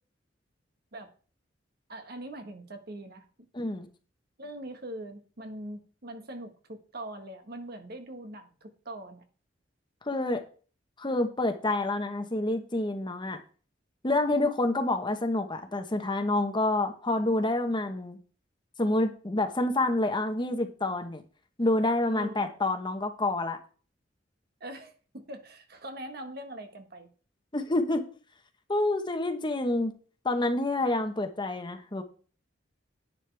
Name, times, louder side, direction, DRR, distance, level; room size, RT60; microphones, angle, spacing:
voice 1, 1.9-3.3 4.4-9.2 22.1-22.5 24.6-27.1, right 1 dB, 55° right, 1.4 m, -42 dB
voice 2, 3.5-3.9 10.1-10.4 11.0-13.4 14.0-18.2 18.8-21.2 21.6-23.6 27.5-28.1 28.7-29.9 30.2-32.0, left 2 dB, 25° left, 1.0 m, -28 dB
10.5 x 9.2 x 3.4 m
head